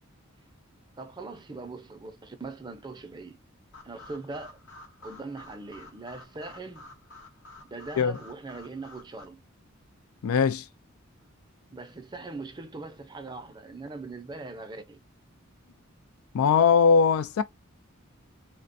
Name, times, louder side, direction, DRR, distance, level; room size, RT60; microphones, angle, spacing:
voice 1, 1.0-3.4 3.8-4.6 5.0-6.9 7.7-9.4 11.7-15.0, right 3 dB, 20° right, 0.5 m, -41 dB
sound 1, 3.7-9.3, left 2 dB, 55° left, 0.8 m, -50 dB
voice 2, 10.2-10.7 16.3-17.4, left 6 dB, 90° left, 0.4 m, -20 dB
3.3 x 2.1 x 2.5 m
head